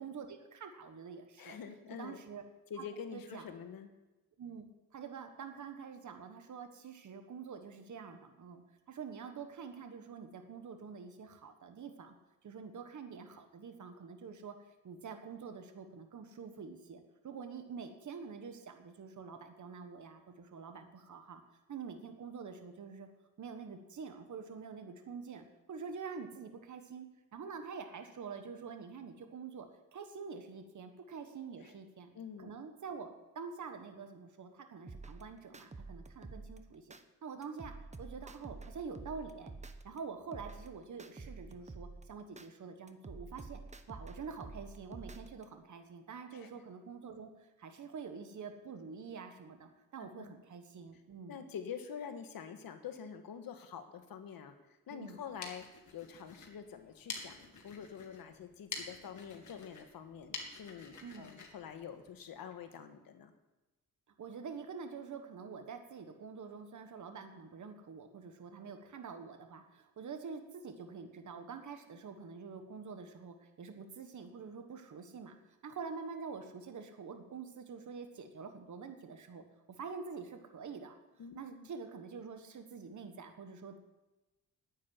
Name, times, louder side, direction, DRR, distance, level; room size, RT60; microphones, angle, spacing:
voice 1, 0.0-1.6 2.0-2.4 2.8-2.9 3.1-3.6 4.4-4.7 4.9-8.6 8.9-12.1 12.4-14.5 14.8-21.4 21.7-23.1 23.4-27.1 27.3-32.1 32.4-33.1 33.3-39.5 39.8-43.6 43.9-51.4 54.9-55.2 61.0-61.3 64.2-75.4 75.6-80.9 81.3-83.8, right 5 dB, 55° right, 6 dB, 1.5 m, -46 dB
voice 2, 1.4-2.2 2.7-3.9 31.6-31.7 32.1-32.5 46.3-46.5 50.0-50.3 51.3-55.7 55.9-63.3 81.2-81.7, left 7 dB, 75° left, 7 dB, 1.6 m, -46 dB
sound 1, 34.9-37.0 37.4-40.0 40.3-42.5 42.9-45.4, right 3 dB, 20° right, 0.9 m, -49 dB
sound 2, 55.1-62.6, left 4 dB, 55° left, 2.4 m, -48 dB
9.5 x 8.6 x 9.6 m, 1.1 s
cardioid pair, 95°, 35 cm